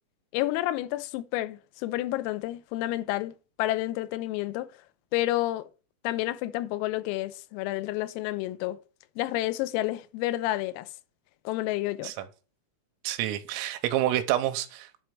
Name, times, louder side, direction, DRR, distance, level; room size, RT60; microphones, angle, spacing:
voice 1, 0.3-4.7 5.1-5.7 6.0-8.8 9.2-10.9 11.5-12.1, left 16 dB, 90° left, 3.3 m, -30 dB
voice 2, 13.1-15.0, right 13 dB, 85° right, 3.5 m, -28 dB
10.0 x 4.4 x 6.5 m
omnidirectional pair, 5.9 m